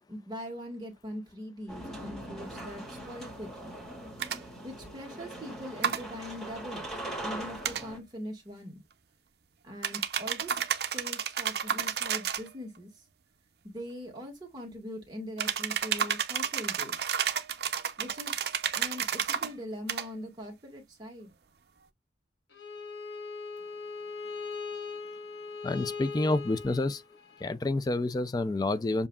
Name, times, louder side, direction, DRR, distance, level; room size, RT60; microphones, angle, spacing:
voice 1, 0.1-3.8 4.6-6.9 7.2-8.8 9.6-10.6 10.9-13.0 13.6-17.0 18.0-18.4 18.7-21.3, equal, 25° right, 1.7 m, -42 dB
sound 1, 1.7-8.0, right 1 dB, ahead, 2.1 m, -41 dB
sound 2, 4.2-4.4 5.8-6.0 7.6-7.8 9.8-12.5 15.4-19.5 19.9-20.1, right 8 dB, 65° right, 0.6 m, -31 dB
Bowed string instrument, 22.5-27.5, left 4 dB, 80° left, 1.1 m, -40 dB
voice 2, 25.6-27.0 27.4-29.1, left 2 dB, 20° left, 0.3 m, -28 dB
7.0 x 2.7 x 2.3 m
head